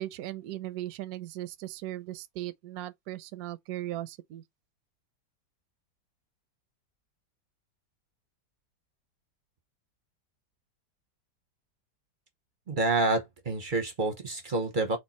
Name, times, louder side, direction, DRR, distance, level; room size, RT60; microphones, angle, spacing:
voice 1, 0.0-4.4, right 14 dB, 70° right, 0.9 m, -38 dB
voice 2, 12.7-15.0, right 2 dB, 40° right, 0.7 m, -28 dB
4.5 x 2.3 x 4.1 m
omnidirectional pair, 1.9 m